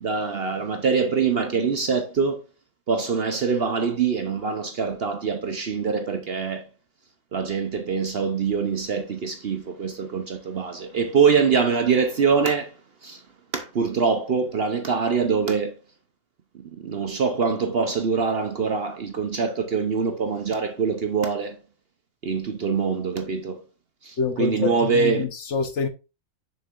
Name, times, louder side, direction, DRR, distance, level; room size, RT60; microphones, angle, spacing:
voice 1, 0.0-2.4 2.9-6.7 7.3-12.7 13.0-13.2 13.5-15.7 16.6-21.6 22.2-23.6 24.0-25.3, right 5 dB, 50° right, 0.8 m, -24 dB
voice 2, 24.2-25.9, left 5 dB, 60° left, 1.1 m, -26 dB
6.8 x 6.5 x 2.5 m
omnidirectional pair, 1.6 m